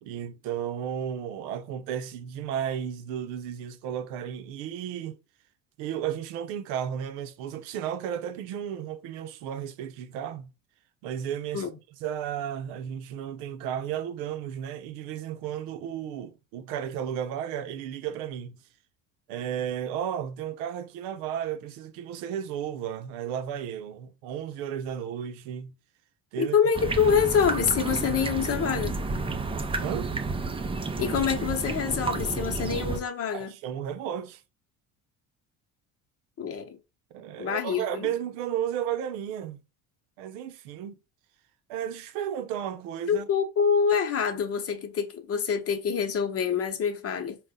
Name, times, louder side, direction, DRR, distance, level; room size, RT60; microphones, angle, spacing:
voice 1, 0.0-5.2 5.8-10.5 11.0-11.7 12.0-18.6 19.3-25.7 26.3-26.6 29.8-30.2 33.3-34.4 37.1-39.6 40.2-41.0 41.7-43.3, right 9 dB, 80° right, 0.7 m, -33 dB
voice 2, 26.4-29.0 31.0-33.6 36.4-36.8 37.4-38.1 43.1-47.4, left 7 dB, 40° left, 0.9 m, -26 dB
sound 1, 26.7-33.0, right 3 dB, 15° right, 0.5 m, -31 dB
4.0 x 2.3 x 3.6 m
supercardioid pair, 85°, 35 cm